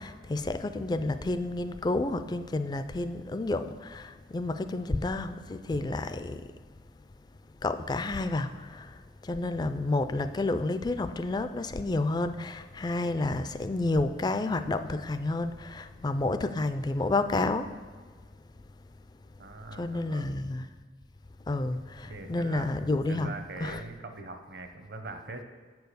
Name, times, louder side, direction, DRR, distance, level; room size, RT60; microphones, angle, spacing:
voice 1, 0.0-6.4 7.6-17.7 19.8-20.7 21.5-23.3 23.6-23.8, left 2 dB, 20° left, 11 dB, 0.3 m, -30 dB
voice 2, 19.4-20.4 22.0-25.4, right 3 dB, 55° right, 6 dB, 0.8 m, -42 dB
8.3 x 4.7 x 6.6 m, 1.5 s
head